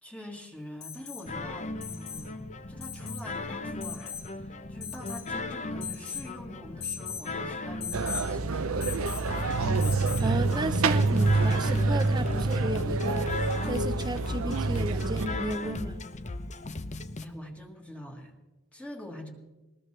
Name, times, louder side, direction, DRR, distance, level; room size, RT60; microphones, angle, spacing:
voice 1, 0.0-8.6 17.2-18.3 18.7-19.3, left 1 dB, 5° left, 1 dB, 1.7 m, -44 dB
Alarm, 0.8-1.3 1.8-2.3 2.8-3.3 3.8-4.3 4.8-5.3 5.8-6.3 6.8-7.3 7.8-8.3 8.8-9.3 9.8-10.3 12.0-12.1, left 8 dB, 85° left, 2.6 m, -39 dB
sound 1, 1.3-17.2, left 2 dB, 35° left, 0.8 m, -37 dB
sound 2, 7.9-15.3, right 3 dB, 65° right, 0.7 m, -27 dB
voice 2, 10.2-13.3 13.7-16.0, right 1 dB, 20° right, 10 dB, 0.9 m, -33 dB
22.0 x 19.5 x 3.3 m, 1.1 s
head